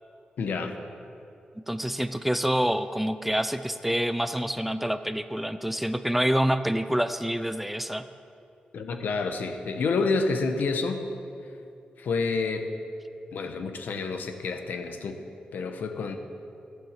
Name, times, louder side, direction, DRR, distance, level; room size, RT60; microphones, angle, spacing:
voice 1, 0.4-0.8 8.7-11.1 12.0-12.6 13.3-15.2 15.5-16.2, left 4 dB, 85° left, 6 dB, 1.1 m, -28 dB
voice 2, 1.7-8.0, equal, 5° right, 11 dB, 0.5 m, -27 dB
14.5 x 8.3 x 7.4 m, 2.6 s
wide cardioid pair, 110°, 3 cm